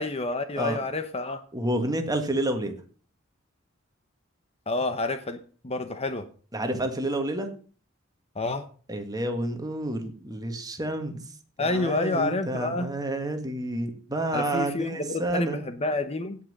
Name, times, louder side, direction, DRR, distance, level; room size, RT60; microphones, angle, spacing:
voice 1, 0.0-1.4 4.7-6.3 8.4-8.7 11.6-12.9 14.3-16.4, left 2 dB, 30° left, 9 dB, 0.9 m, -29 dB
voice 2, 1.5-2.8 6.5-7.5 8.9-11.2 11.6-15.6, right 1 dB, 20° right, 5 dB, 1.8 m, -29 dB
16.5 x 5.7 x 6.5 m, 0.42 s
head